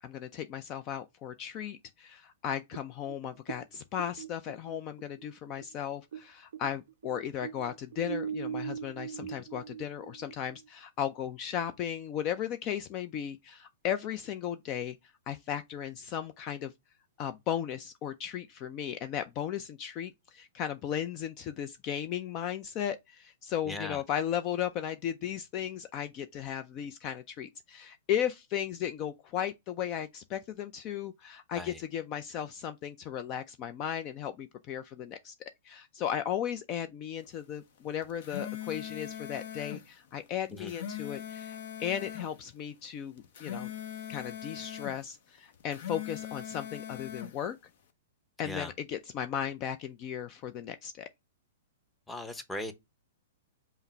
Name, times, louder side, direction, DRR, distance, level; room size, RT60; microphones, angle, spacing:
voice 1, 0.0-15.0 15.3-16.7 17.2-35.3 35.6-43.7 44.1-47.6 48.4-51.1, left 9 dB, 35° left, 0.4 m, -36 dB
sound 1, 2.7-6.3 6.5-10.7, right 8 dB, 75° right, 0.4 m, -40 dB
voice 2, 23.7-24.0 31.5-31.8 40.5-40.7 48.4-48.7 52.1-52.7, left 1 dB, 5° left, 0.8 m, -38 dB
sound 2, 38.0-39.8 40.5-42.3 43.2-45.0 45.6-47.3, left 9 dB, 60° left, 0.9 m, -41 dB
5.5 x 2.0 x 4.5 m
hypercardioid pair, 125°, 0 cm